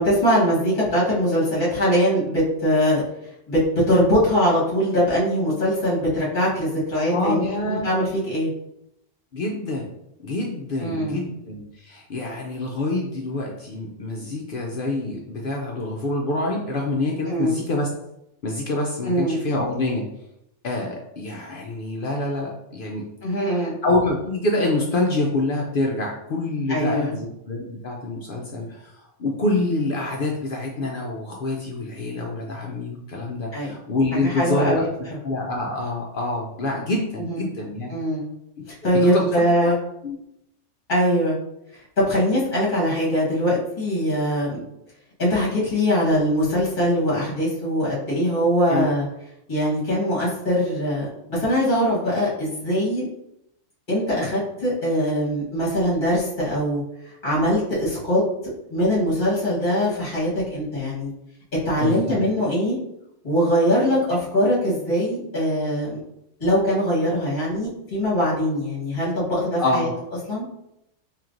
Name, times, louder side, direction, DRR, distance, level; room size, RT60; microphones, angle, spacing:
voice 1, 0.0-3.0 3.5-7.4 7.7-8.5 10.8-11.2 17.2-17.6 19.0-19.4 23.2-23.8 26.7-27.2 33.5-33.7 34.2-34.9 37.2-37.4 37.9-38.3 38.7-39.7 40.9-41.4 41.7-44.6 45.2-49.0 49.5-53.0 53.9-56.8 57.2-58.2 58.7-61.1 61.6-62.8 63.2-66.0 66.4-69.9 70.3-70.4, equal, 40° left, -7 dB, 1.5 m, -22 dB
voice 2, 7.1-7.9 9.3-9.9 10.2-17.9 18.4-20.0 20.6-34.9 35.2-37.9 39.0-39.2 39.6-39.7 40.0-40.2 48.7-48.9 61.8-62.2 69.6-69.9, left 2 dB, 60° left, -1 dB, 0.6 m, -26 dB
4.5 x 3.1 x 2.5 m, 0.82 s
omnidirectional pair, 1.3 m